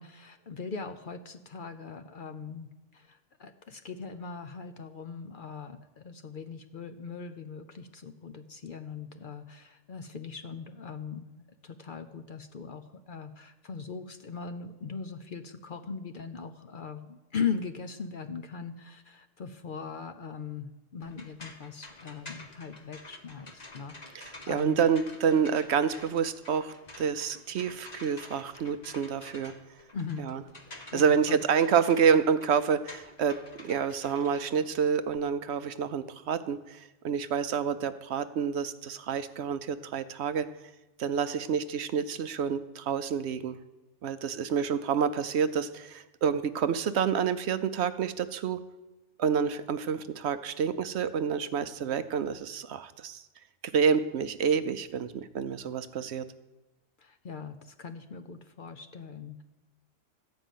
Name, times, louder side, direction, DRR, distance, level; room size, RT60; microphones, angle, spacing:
voice 1, 0.0-24.8 29.9-30.2 30.6-31.4 57.0-59.4, left 6 dB, 50° left, 7 dB, 0.7 m, -40 dB
sound 1, 21.0-35.2, left 2 dB, 35° left, 1.2 m, -49 dB
voice 2, 24.1-29.5 30.2-30.4 30.9-40.5 41.0-43.6 44.0-48.6 49.2-53.2 53.7-56.2, right 7 dB, 65° right, 12 dB, 0.8 m, -28 dB
13.5 x 5.3 x 9.1 m, 1.0 s
omnidirectional pair, 1.3 m